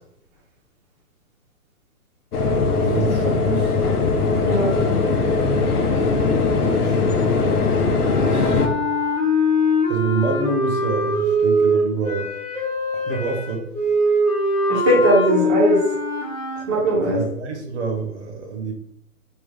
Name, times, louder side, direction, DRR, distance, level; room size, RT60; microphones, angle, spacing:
sound 1, 2.3-8.7, left 4 dB, 85° left, 0.9 m, -20 dB
voice 1, 2.8-3.8 6.6-7.3 8.2-8.7 9.9-12.3 13.1-13.7 17.0-18.7, right 4 dB, 50° right, 3 dB, 1.0 m, -27 dB
voice 2, 4.4-4.8 14.7-15.8 16.7-17.2, right 1 dB, 20° right, -6 dB, 0.8 m, -18 dB
sound 2, 8.0-16.7, left 1 dB, 25° left, 1.0 m, -22 dB
3.6 x 2.4 x 3.7 m, 0.75 s
hypercardioid pair, 150°, 44 cm